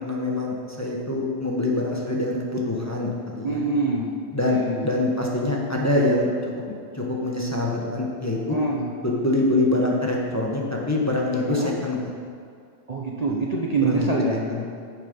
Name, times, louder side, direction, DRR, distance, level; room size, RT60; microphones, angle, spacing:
voice 1, 0.0-3.6 4.3-6.3 6.7-8.6 9.0-12.0 13.3-13.5 13.8-14.1 14.5-14.7, left 2 dB, 15° left, -2 dB, 1.1 m, -25 dB
voice 2, 3.4-4.1 4.4-5.0 8.5-8.9 11.5-11.7 12.9-14.4, right 3 dB, 35° right, -3 dB, 0.8 m, -25 dB
9.7 x 7.0 x 5.3 m, 2.3 s
omnidirectional pair, 1.2 m